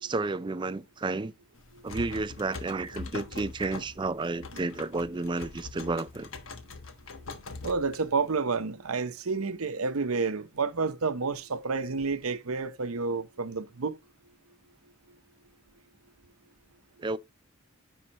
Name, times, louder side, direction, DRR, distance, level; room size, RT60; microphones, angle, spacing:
voice 1, 0.0-1.3 1.8-6.3 17.0-17.2, right 3 dB, 20° right, 0.4 m, -31 dB
sound 1, 1.6-8.4, left 3 dB, 65° left, 1.2 m, -43 dB
voice 2, 7.6-14.0, right 4 dB, 85° right, 0.8 m, -30 dB
9.9 x 5.5 x 2.9 m
head